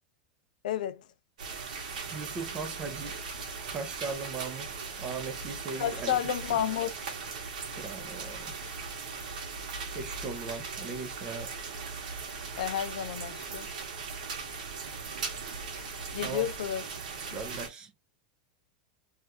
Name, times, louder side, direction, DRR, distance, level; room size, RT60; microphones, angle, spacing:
voice 1, 0.6-1.0 5.7-6.9 12.6-13.7 16.1-16.8, left 10 dB, 85° left, 0.5 m, -31 dB
sound 1, 1.4-17.7, right 5 dB, 85° right, 1.1 m, -39 dB
voice 2, 2.1-3.3 3.7-6.6 7.8-8.5 9.9-11.5 16.2-16.5 17.3-17.9, right 4 dB, 20° right, 0.5 m, -39 dB
2.7 x 2.3 x 3.2 m
supercardioid pair, 170°, 4 cm